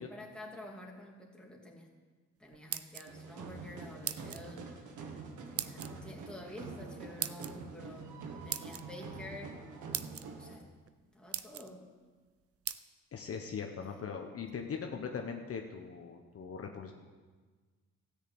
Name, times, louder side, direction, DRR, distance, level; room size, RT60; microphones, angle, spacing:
voice 1, 0.0-1.9 2.4-4.9 5.5-8.1 8.4-9.6 10.4-10.7 11.1-11.9 13.8-14.0, left 1 dB, 5° left, -1 dB, 2.5 m, -49 dB
sound 1, 2.5-3.3 4.0-4.5 5.6-5.9 7.2-7.5 8.5-8.8 9.5-9.6 9.9-10.2 10.9-11.0 11.3-11.7 12.7-12.8, right 10 dB, 50° right, 0.6 m, -38 dB
sound 2, 3.1-10.5, right 4 dB, 80° right, 1.7 m, -46 dB
voice 2, 13.1-16.9, left 6 dB, 50° left, 3 dB, 1.2 m, -40 dB
13.0 x 6.7 x 8.7 m, 1.4 s
cardioid pair, 90°, 30 cm